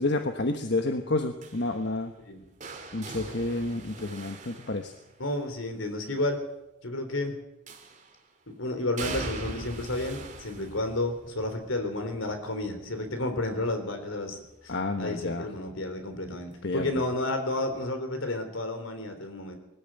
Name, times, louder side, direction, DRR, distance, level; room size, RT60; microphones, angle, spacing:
voice 1, 0.0-2.1 2.9-4.9 14.7-15.5 16.6-16.9, left 2 dB, 55° left, 6 dB, 1.2 m, -29 dB
sound 1, 1.4-5.5 7.7-8.3 9.0-14.8 15.1-15.5 16.8-16.9, right 3 dB, 35° right, 2.8 m, -42 dB
voice 2, 5.2-6.4 6.8-7.4 8.5-19.6, left 2 dB, 70° left, 7 dB, 3.7 m, -31 dB
20.5 x 14.5 x 9.0 m, 0.92 s
head